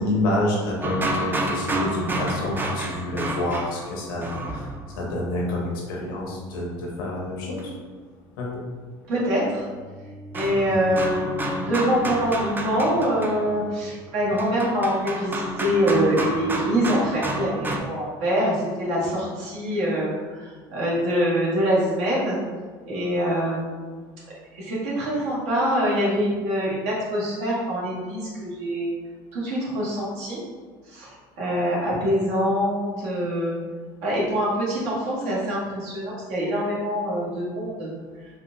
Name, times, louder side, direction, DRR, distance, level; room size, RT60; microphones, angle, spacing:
voice 1, 0.0-4.7 5.0-7.7 8.4-8.5 10.6-10.7, left 1 dB, 90° left, -2 dB, 0.9 m, -28 dB
sound 1, 0.8-5.1 7.6-7.7 9.4-17.8, right 1 dB, 20° right, 0.4 m, -30 dB
voice 2, 9.1-9.7 10.3-22.4 22.8-23.8 24.5-28.9 29.3-30.4 30.9-33.6 34.0-37.9, equal, 75° right, -7 dB, 1.5 m, -24 dB
4.2 x 2.4 x 2.6 m, 1.5 s
supercardioid pair, 95°, 11 cm